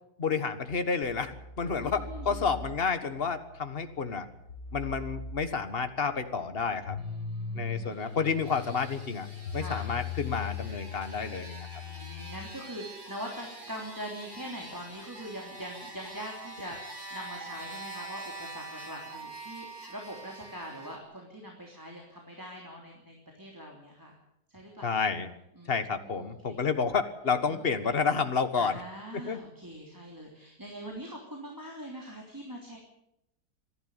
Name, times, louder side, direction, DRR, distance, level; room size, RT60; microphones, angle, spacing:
voice 1, 0.2-4.3 4.7-7.0 7.5-9.3 9.5-11.7 24.8-25.3 25.7-28.8 29.1-29.4, left 5 dB, 35° left, 9 dB, 1.6 m, -30 dB
sound 1, 1.0-12.5, left 5 dB, 80° left, 2.5 m, -41 dB
voice 2, 1.8-2.4 6.9-8.0 9.5-9.9 11.8-24.1 24.5-25.1 25.6-26.7 27.5-27.8 28.6-32.8, equal, 10° right, -1 dB, 3.1 m, -43 dB
sound 2, 7.7-21.0, right 2 dB, 40° right, 5.5 m, -45 dB
26.0 x 12.0 x 9.1 m, 0.82 s
omnidirectional pair, 1.9 m